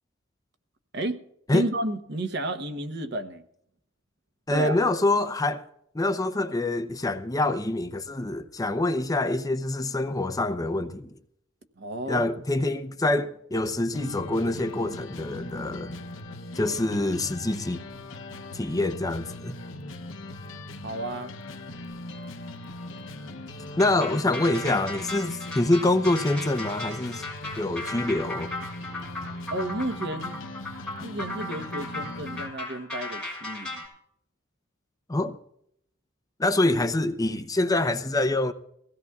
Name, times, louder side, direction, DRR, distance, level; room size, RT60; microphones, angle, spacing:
voice 1, 1.5-3.4 4.5-4.8 11.8-12.3 20.8-21.3 29.5-30.4 31.0-33.8, right 1 dB, 60° right, 1.0 m, -32 dB
voice 2, 4.5-5.6 5.9-11.1 12.1-15.9 16.5-17.8 18.5-19.6 23.8-27.3 27.6-28.5 35.1-35.4 36.4-38.5, left 2 dB, 20° left, 0.7 m, -25 dB
Hard Rock Route - Club Old Radio, 13.9-32.5, left 1 dB, 85° left, 0.8 m, -40 dB
sound 1, 23.8-33.9, left 2 dB, 5° left, 6.7 m, -36 dB
23.0 x 16.5 x 2.4 m
head